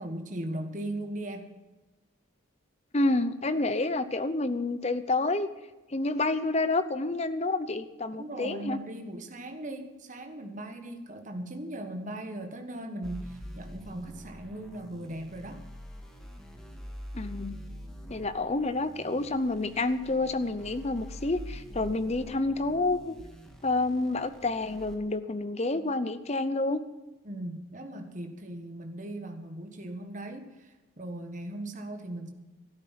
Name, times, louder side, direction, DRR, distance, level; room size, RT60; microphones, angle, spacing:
voice 1, 0.0-1.5 8.1-15.6 27.2-32.3, right 1 dB, 40° right, 5 dB, 1.4 m, -38 dB
voice 2, 2.9-5.5 5.9-8.8 17.1-17.6 18.1-23.1 23.6-26.8, left 2 dB, 30° left, 13 dB, 0.7 m, -29 dB
sound 1, 13.0-24.9, equal, 5° left, 1.6 m, -45 dB
13.5 x 11.5 x 5.8 m, 1.1 s
head